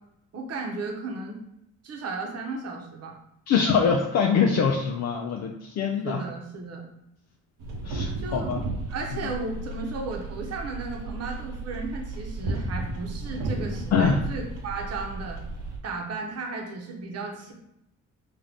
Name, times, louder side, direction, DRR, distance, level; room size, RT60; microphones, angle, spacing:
voice 1, 0.3-1.4 1.8-3.2 6.0-6.9 8.2-8.5 8.9-15.4 15.8-17.5, right 3 dB, 55° right, 0 dB, 0.9 m, -34 dB
voice 2, 3.5-6.2 7.8-8.6 9.1-9.2 13.9-14.2, left 6 dB, 60° left, 1 dB, 0.5 m, -24 dB
sound 1, 7.6-15.8, right 2 dB, 90° right, 0.8 m, -33 dB
3.8 x 2.5 x 3.4 m, 0.80 s
cardioid pair, 90°, 30 cm